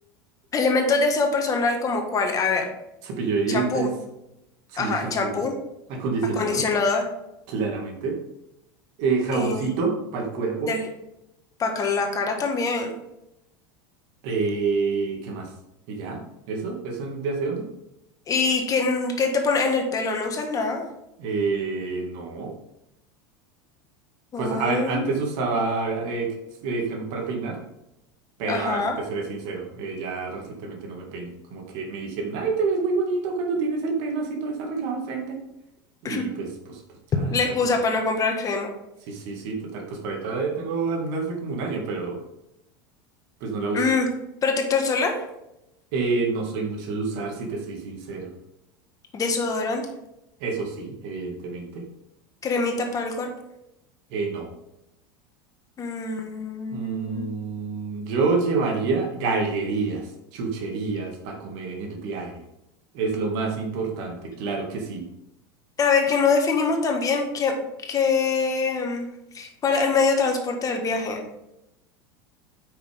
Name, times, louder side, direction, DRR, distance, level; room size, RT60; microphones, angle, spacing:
voice 1, 0.5-2.7 3.5-3.9 4.8-5.5 6.3-7.1 9.3-9.7 10.7-10.8 11.6-13.0 18.3-20.8 24.3-25.2 28.5-29.0 36.0-36.2 37.1-38.7 43.7-44.1 44.4-45.1 49.1-49.8 52.4-53.3 55.8-57.3 65.8-67.5 67.8-69.1 69.3-71.2, left 4 dB, 30° left, 3 dB, 1.5 m, -24 dB
voice 2, 3.0-3.9 4.7-5.4 5.9-6.6 7.5-8.2 9.0-10.7 14.2-15.5 15.9-17.7 21.2-22.5 24.4-26.3 26.6-27.6 28.4-35.4 36.0-36.8 37.1-37.3 39.1-42.2 43.4-43.8 45.9-48.3 50.4-51.9 54.1-54.5 56.7-62.4 62.9-65.1, right 4 dB, 65° right, 1 dB, 2.1 m, -28 dB
8.5 x 6.0 x 3.6 m, 0.86 s
supercardioid pair, 120°, 12 cm